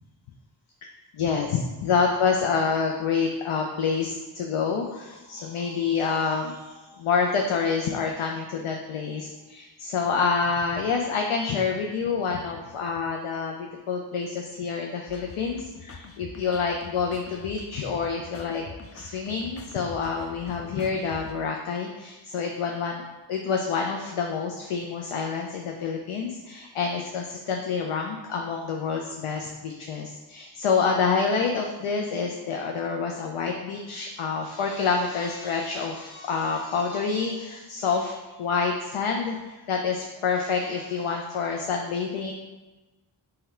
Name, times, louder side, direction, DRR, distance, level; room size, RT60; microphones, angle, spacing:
voice 1, 1.1-18.6 18.9-23.0 23.3-42.3, left 5 dB, 85° left, 1 dB, 0.6 m, -27 dB
sound 1, 15.1-21.3, left 4 dB, 30° left, 0.4 m, -45 dB
5.7 x 2.2 x 4.3 m, 1.2 s
wide cardioid pair, 50°, 49 cm